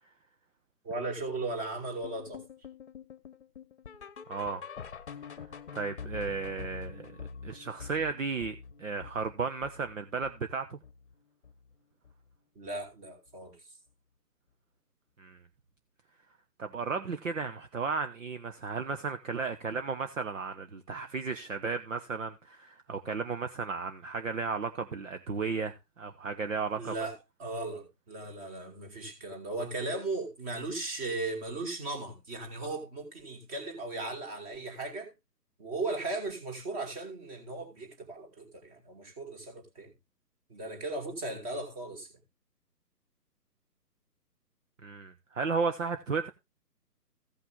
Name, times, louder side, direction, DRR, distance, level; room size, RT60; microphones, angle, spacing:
voice 1, 0.8-2.4 12.6-13.6 26.8-35.1 35.6-39.9 40.5-42.1, right 2 dB, 20° right, 2.7 m, -37 dB
sound 1, 2.0-11.1 11.4-11.7 12.0-12.1 12.7-12.8 13.3-13.4, left 6 dB, 45° left, 1.0 m, -46 dB
voice 2, 4.3-4.6 5.7-7.2 7.4-10.8 15.2-15.4 16.6-26.9 44.8-46.3, right 5 dB, 50° right, 1.0 m, -34 dB
15.5 x 5.8 x 3.7 m
figure-of-eight pair, 145°, 49 cm